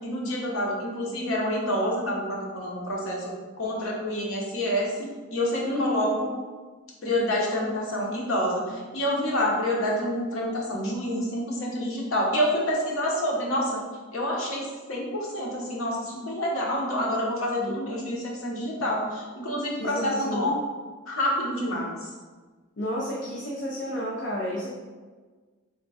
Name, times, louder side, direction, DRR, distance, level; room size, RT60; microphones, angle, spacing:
voice 1, 0.0-6.3 7.0-13.8 14.1-20.5 21.1-22.1, equal, 90° left, -3 dB, 0.9 m, -28 dB
voice 2, 5.6-6.3 17.6-18.0 19.8-20.5 22.8-24.7, equal, 55° left, -4 dB, 0.5 m, -31 dB
3.6 x 2.2 x 4.1 m, 1.4 s
head